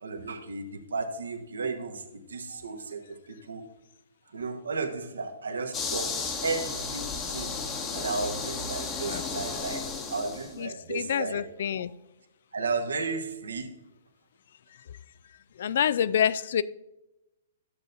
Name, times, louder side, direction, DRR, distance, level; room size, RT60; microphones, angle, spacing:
voice 1, 0.0-3.6 4.3-6.2 6.4-7.5 7.9-11.4 12.5-13.7, right 4 dB, 70° right, 6 dB, 1.1 m, -34 dB
sound 1, 5.7-10.5, left 4 dB, 20° left, 1.1 m, -34 dB
voice 2, 10.6-11.9 15.6-16.6, left 9 dB, 55° left, 17 dB, 0.3 m, -27 dB
12.5 x 7.6 x 2.6 m, 0.93 s
figure-of-eight pair, 115°, 0 cm